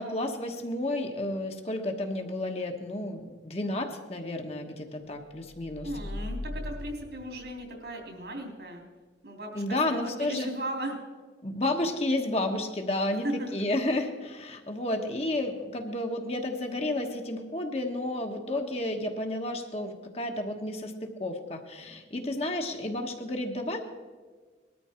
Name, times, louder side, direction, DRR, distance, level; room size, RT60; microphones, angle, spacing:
voice 1, 0.0-5.9 9.5-10.5 11.4-23.8, left 1 dB, 35° left, 4 dB, 1.3 m, -31 dB
sound 1, 5.5-8.1, left 1 dB, 80° left, 0.8 m, -39 dB
voice 2, 5.8-8.8 9.2-11.0 13.2-13.5 22.6-22.7, right 1 dB, 70° right, 2 dB, 3.2 m, -37 dB
20.0 x 13.0 x 4.4 m, 1.4 s
head